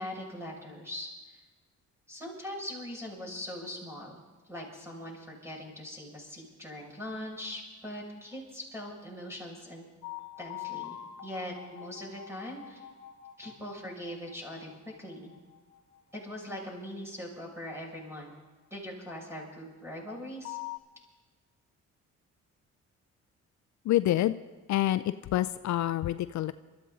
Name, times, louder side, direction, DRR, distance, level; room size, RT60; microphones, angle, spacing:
voice 1, 0.0-1.4 2.1-4.2 4.5-9.8 10.4-12.9 13.4-14.7 15.0-15.3 16.1-18.3 18.7-20.6, left 1 dB, 10° right, -2 dB, 6.5 m, -41 dB
sound 1, 10.0-19.1 20.1-20.8, left 13 dB, 85° left, 1.2 m, -46 dB
voice 2, 23.9-24.4 24.7-25.0 25.3-26.5, left 14 dB, 70° left, 13 dB, 0.5 m, -27 dB
24.5 x 14.0 x 4.0 m, 1.2 s
cardioid pair, 90°, 30 cm